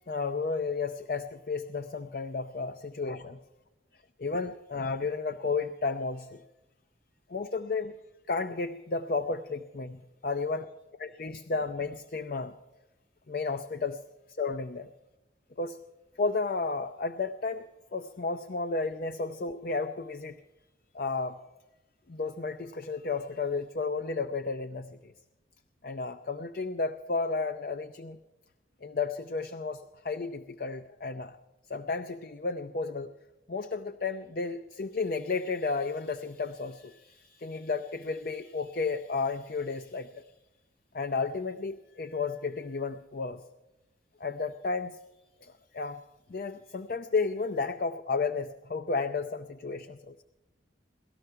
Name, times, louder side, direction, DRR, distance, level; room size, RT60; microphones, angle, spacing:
voice 1, 0.1-3.4 4.2-6.4 7.3-8.0 8.3-10.7 11.0-12.5 13.3-14.0 14.4-14.9 15.6-15.8 16.2-20.4 20.9-21.4 22.1-25.1 25.8-28.2 28.8-31.4 31.7-33.1 33.5-40.3 40.9-43.4 44.2-45.0 45.4-46.0 46.3-50.1, left 4 dB, 50° left, 8 dB, 0.5 m, -33 dB
18.0 x 13.0 x 5.7 m, 1.0 s
head